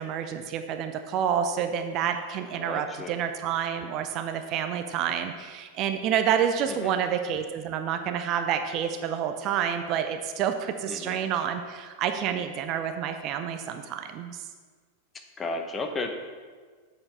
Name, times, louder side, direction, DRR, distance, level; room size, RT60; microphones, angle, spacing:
voice 1, 0.0-14.5, right 8 dB, 40° right, 7 dB, 0.5 m, -28 dB
voice 2, 2.5-3.2 6.7-6.9 10.9-11.2 15.1-16.1, left 3 dB, 20° left, 5 dB, 0.8 m, -34 dB
7.0 x 5.3 x 5.4 m, 1.5 s
figure-of-eight pair, 90°, 0 cm